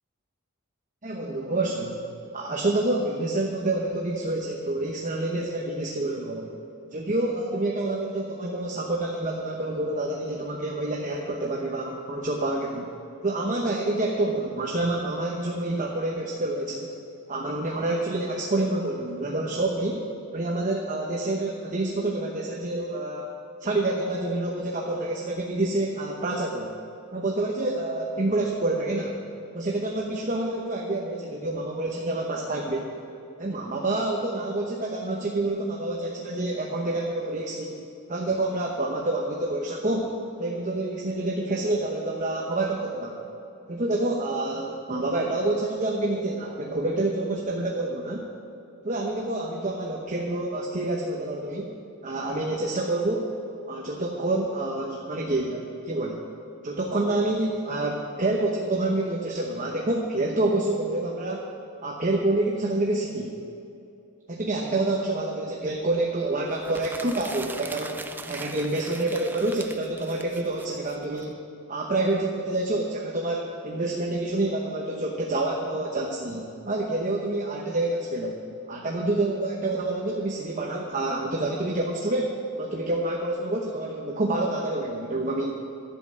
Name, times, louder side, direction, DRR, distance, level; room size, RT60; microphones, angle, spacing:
voice 1, 1.0-2.0 2.3-6.5 6.9-12.9 13.2-16.9 17.3-20.0 20.3-23.3 23.6-26.7 27.1-29.2 29.5-32.9 33.4-37.8 38.1-40.1 40.4-43.2 43.7-48.3 48.8-51.7 52.0-53.3 53.7-56.2 56.6-61.4 61.8-63.3 64.3-71.4 71.7-78.4 78.7-85.5, right 2 dB, 35° right, -1 dB, 1.0 m, -28 dB
sound 1, 66.5-71.2, right 3 dB, 10° right, 0.3 m, -40 dB
11.5 x 7.7 x 8.6 m, 2.7 s
head